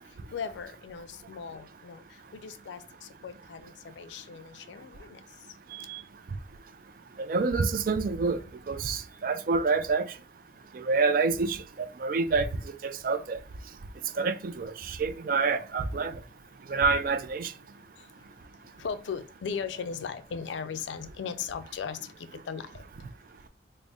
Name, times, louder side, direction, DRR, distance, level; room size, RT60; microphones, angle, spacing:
voice 1, 0.3-5.2 18.0-18.1 18.8-22.9, left 6 dB, 80° left, 0.4 m, -38 dB
voice 2, 7.3-8.4 8.7-10.1 10.7-13.4 14.2-16.1 16.7-17.5, right 4 dB, 50° right, 0.4 m, -27 dB
3.9 x 2.0 x 3.5 m
head